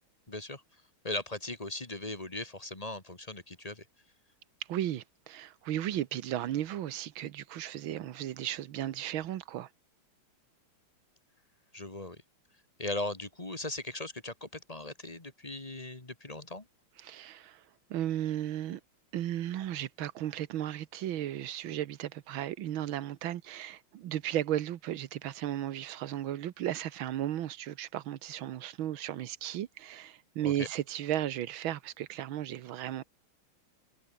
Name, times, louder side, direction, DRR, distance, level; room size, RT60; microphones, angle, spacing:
voice 1, 0.3-0.6 1.0-3.8 11.7-12.2 12.8-16.7 30.4-30.7, left 2 dB, 20° left, 2.1 m, -38 dB
voice 2, 4.7-9.7 17.0-17.6 17.9-18.8 19.1-33.0, right 12 dB, 75° right, 1.8 m, -35 dB
omnidirectional pair, 2.3 m